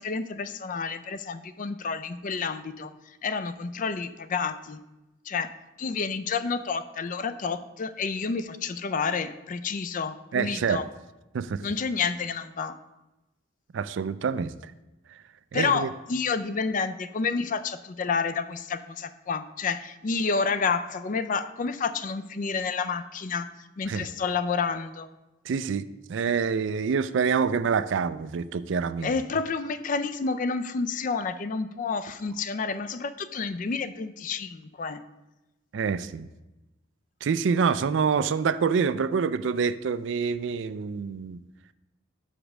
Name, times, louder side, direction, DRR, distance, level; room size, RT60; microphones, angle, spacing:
voice 1, 0.0-2.9 3.2-4.8 5.3-5.5 5.8-10.9 11.6-12.8 15.5-25.1 29.0-35.0, left 5 dB, 40° left, 12 dB, 0.4 m, -29 dB
voice 2, 10.3-10.8 11.3-11.6 13.7-14.6 15.5-15.9 23.9-24.1 25.5-25.8 26.1-29.1 35.7-36.3 37.2-41.4, right 6 dB, 65° right, 14 dB, 0.4 m, -26 dB
6.3 x 5.1 x 6.0 m, 1.0 s
head